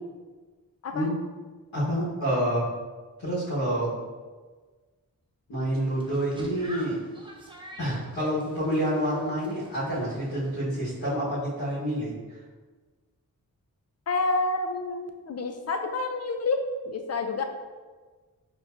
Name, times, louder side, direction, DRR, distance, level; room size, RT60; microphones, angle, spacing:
voice 1, 1.7-2.7 3.2-3.9 5.5-7.0 7.8-12.4, equal, 85° left, -11 dB, 1.5 m, -28 dB
sound 1, 5.7-10.6, right 1 dB, 15° right, 0.7 m, -48 dB
voice 2, 14.1-16.6 16.8-17.4, left 3 dB, 45° left, 5 dB, 0.5 m, -28 dB
4.6 x 3.0 x 2.6 m, 1.4 s
wide cardioid pair, 80°, 35 cm